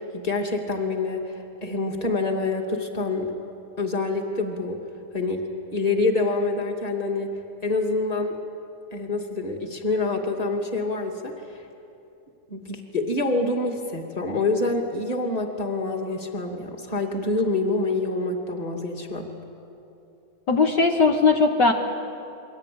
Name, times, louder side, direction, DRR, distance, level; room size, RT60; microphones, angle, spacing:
voice 1, 0.0-3.3 3.8-4.8 5.1-5.4 5.7-7.3 7.6-8.4 8.9-11.6 12.5-19.3, left 3 dB, 20° left, 3 dB, 2.4 m, -26 dB
voice 2, 20.5-21.7, left 4 dB, 55° left, 2 dB, 2.1 m, -19 dB
29.5 x 23.0 x 8.8 m, 2.7 s
omnidirectional pair, 2.3 m